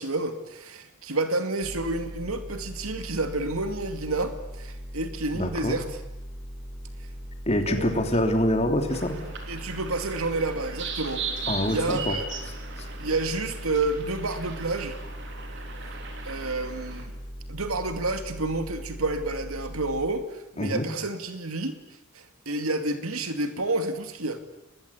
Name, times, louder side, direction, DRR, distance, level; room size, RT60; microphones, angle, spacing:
voice 1, 0.0-6.0 7.7-8.0 9.5-12.3 13.0-15.0 16.2-17.1 17.5-21.7 22.1-24.4, right 2 dB, 85° right, 8 dB, 2.5 m, -30 dB
sound 1, 1.6-20.1, equal, 10° right, 5.5 m, -40 dB
voice 2, 5.3-5.8 7.5-9.2 11.5-12.1 20.6-20.9, left 1 dB, 30° left, 5 dB, 3.1 m, -25 dB
sound 2, 8.9-17.0, right 4 dB, 55° right, 3.9 m, -38 dB
30.0 x 20.5 x 8.6 m, 0.94 s
head